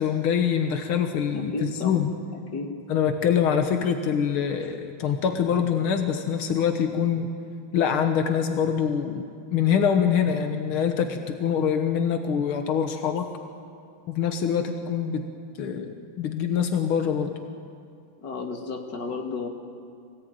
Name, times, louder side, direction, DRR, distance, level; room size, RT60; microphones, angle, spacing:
voice 1, 0.0-2.1 2.9-7.3 7.7-9.2 9.5-13.3 14.1-15.3 15.6-17.4, left 7 dB, 90° left, 6 dB, 2.1 m, -24 dB
voice 2, 1.3-2.0 2.3-2.8 18.2-19.5, left 3 dB, 55° left, 3 dB, 2.7 m, -33 dB
25.5 x 17.5 x 9.2 m, 2.3 s
omnidirectional pair, 2.3 m